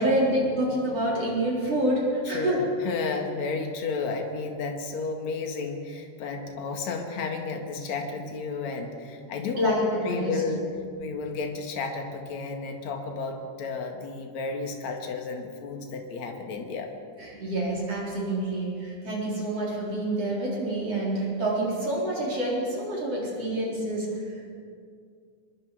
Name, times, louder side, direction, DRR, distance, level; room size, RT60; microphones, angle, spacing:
voice 1, 0.0-2.6 9.6-10.4 17.2-24.5, right 1 dB, 40° right, -4 dB, 5.2 m, -27 dB
voice 2, 2.3-10.6 11.0-16.9, left 4 dB, 50° left, 3 dB, 3.0 m, -32 dB
24.5 x 22.5 x 5.0 m, 2.3 s
omnidirectional pair, 4.5 m